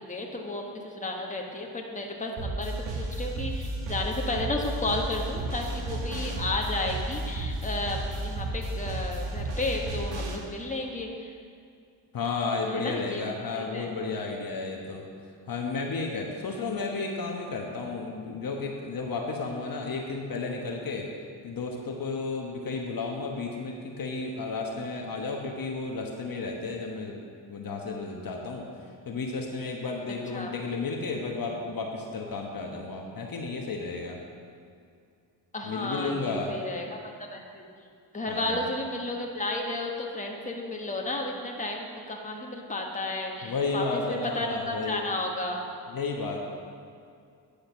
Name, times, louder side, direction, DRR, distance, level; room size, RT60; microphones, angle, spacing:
voice 1, 0.0-11.3 12.7-13.2 13.5-14.1 30.2-30.5 35.5-37.0 37.3-37.7 38.1-45.6, left 2 dB, 15° left, 0 dB, 1.4 m, -33 dB
sound 1, 2.4-10.4, right 1 dB, 65° right, 1.5 m, -33 dB
voice 2, 12.1-15.0 15.5-21.1 21.4-27.2 27.5-28.7 29.1-34.2 35.6-36.5 38.3-38.7 43.4-45.1 45.9-46.5, left 3 dB, 45° left, 0 dB, 1.2 m, -32 dB
10.0 x 5.1 x 6.1 m, 2.3 s
supercardioid pair, 65°, 47 cm